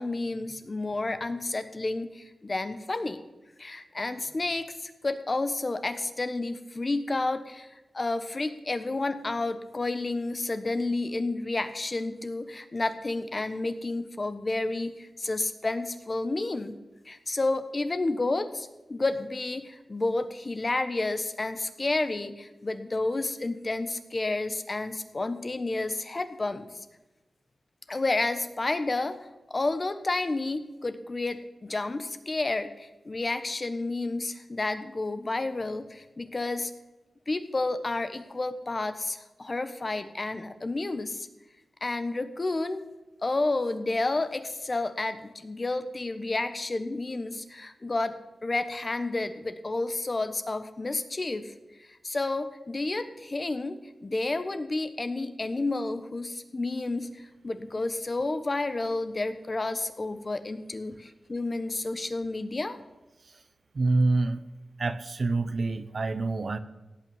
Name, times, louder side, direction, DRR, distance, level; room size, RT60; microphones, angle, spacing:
voice 1, 0.0-3.2 3.6-16.7 17.0-26.8 27.9-29.2 29.5-36.7 37.3-41.3 41.8-42.8 43.2-48.1 48.4-51.5 51.8-62.8, left 2 dB, 35° left, 9 dB, 1.2 m, -30 dB
voice 2, 63.7-64.4 64.8-66.6, right 3 dB, 55° right, 12 dB, 0.9 m, -26 dB
17.0 x 5.8 x 9.0 m, 1.0 s
wide cardioid pair, 80°, 0 cm